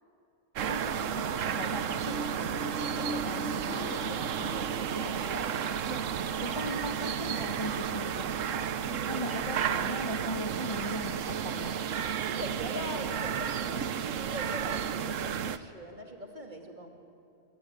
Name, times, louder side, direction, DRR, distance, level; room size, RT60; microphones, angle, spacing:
sound 1, 0.5-15.6, right 8 dB, 85° right, 1.2 m, -32 dB
voice 1, 0.7-6.0 6.4-8.7 9.1-11.8, left 1 dB, 25° left, 5 dB, 1.1 m, -40 dB
sound 2, 1.5-7.7 8.1-8.2, right 1 dB, 55° left, 1.5 m, -43 dB
voice 2, 5.0-5.5 9.0-9.4 12.2-16.9, equal, 40° right, 3 dB, 2.9 m, -41 dB
24.5 x 24.0 x 9.2 m, 2.7 s
omnidirectional pair, 1.3 m